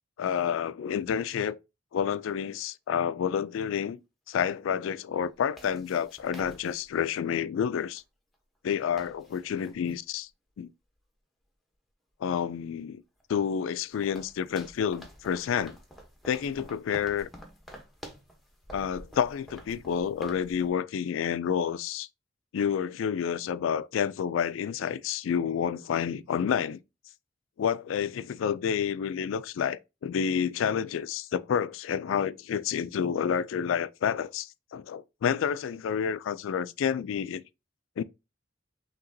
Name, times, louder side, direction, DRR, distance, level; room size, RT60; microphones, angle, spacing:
voice 1, 0.2-1.6 1.9-4.0 4.3-8.0 8.6-10.2 10.6-10.7 12.2-13.0 13.3-15.8 16.3-17.3 18.7-22.1 22.5-26.8 27.6-37.4 38.0-38.1, left 8 dB, 90° left, 0.3 m, -29 dB
sound 1, 2.4-2.5 5.2-7.2 8.0-8.1 8.3-8.4 8.7-10.0 12.5-12.6 13.2-20.7, equal, ahead, 0.8 m, -48 dB
5.7 x 2.9 x 2.6 m
head